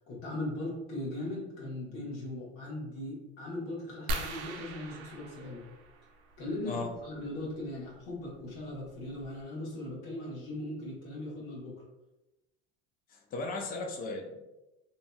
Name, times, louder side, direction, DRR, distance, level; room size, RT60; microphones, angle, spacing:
voice 1, 0.1-5.7 6.4-11.8, left 1 dB, 65° left, -6 dB, 1.3 m, -39 dB
sound 1, 4.1-6.5 8.1-8.2 8.8-8.9 9.2-9.4, right 1 dB, 85° right, 0.5 m, -39 dB
voice 2, 13.1-14.4, left 3 dB, 30° left, 2 dB, 0.3 m, -36 dB
2.8 x 2.6 x 2.3 m, 1.0 s
supercardioid pair, 125°, 31 cm